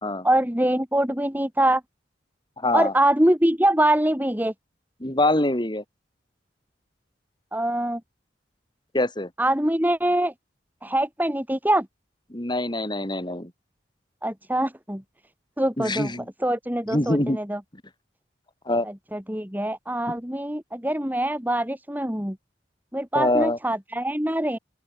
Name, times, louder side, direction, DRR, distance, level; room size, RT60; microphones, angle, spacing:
voice 1, 0.2-1.8 2.7-4.5 7.5-8.0 9.4-10.3 10.8-11.9 14.2-15.0 15.6-16.1 16.4-17.6 18.8-22.4 22.9-24.6, right 1 dB, 10° right, 3.9 m, -24 dB
voice 2, 2.6-2.9 5.0-5.8 8.9-9.3 12.3-13.5 15.8-16.3 16.9-17.4 18.7-18.9 23.1-23.6, left 1 dB, 25° left, 2.8 m, -24 dB
open air
head